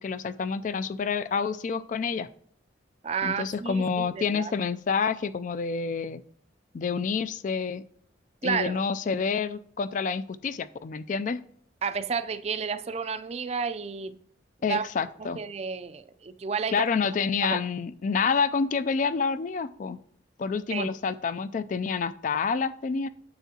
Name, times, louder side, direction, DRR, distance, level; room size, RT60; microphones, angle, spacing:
voice 1, 0.0-2.3 3.2-6.2 6.7-7.8 8.4-11.4 14.6-15.4 16.7-20.0 20.4-23.1, left 5 dB, 45° left, 0.3 m, -28 dB
voice 2, 3.0-4.5 8.4-8.8 11.8-14.2 14.6-14.9 15.4-16.9 17.4-17.6 20.7-20.9, right 5 dB, 35° right, 0.4 m, -31 dB
9.5 x 7.1 x 2.8 m
head